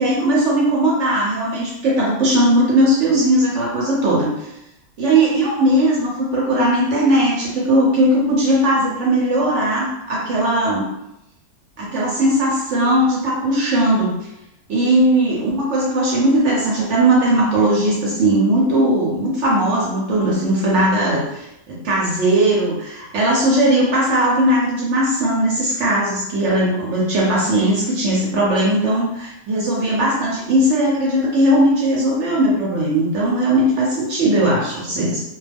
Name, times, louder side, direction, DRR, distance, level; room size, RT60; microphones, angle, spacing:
voice 1, 0.0-4.5 5.0-10.9 11.8-14.2 14.7-35.2, right 1 dB, 60° right, -4 dB, 0.8 m, -18 dB
2.3 x 2.2 x 3.3 m, 0.85 s
omnidirectional pair, 1.6 m